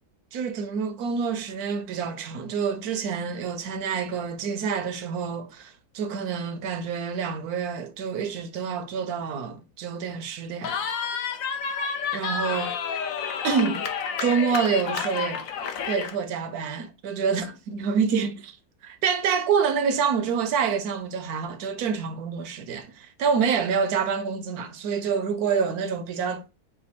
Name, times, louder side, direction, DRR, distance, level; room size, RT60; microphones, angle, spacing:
voice 1, 0.3-10.8 12.1-12.7 13.4-13.9 14.2-15.5 15.9-18.6 18.8-26.5, right 6 dB, 70° right, 1.1 m, -27 dB
Cheering, 10.6-16.2, left 6 dB, 60° left, 1.0 m, -30 dB
5.1 x 2.2 x 4.2 m
omnidirectional pair, 1.8 m